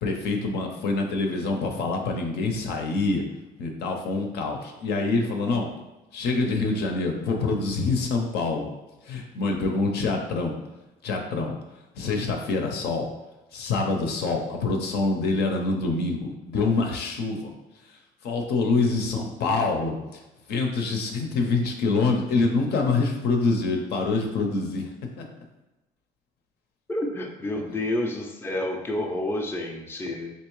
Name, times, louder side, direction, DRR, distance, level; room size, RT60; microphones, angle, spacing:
voice 1, 0.0-3.2 3.6-5.7 6.1-8.7 9.1-10.6 11.0-11.5 12.0-13.1 13.5-17.5 18.2-20.0 20.5-24.9 25.2-25.3, left 3 dB, 75° left, 2 dB, 0.7 m, -25 dB
voice 2, 26.9-30.3, left 1 dB, 15° left, 1 dB, 0.5 m, -29 dB
3.5 x 2.8 x 3.1 m, 1.0 s
cardioid pair, 110°, 17 cm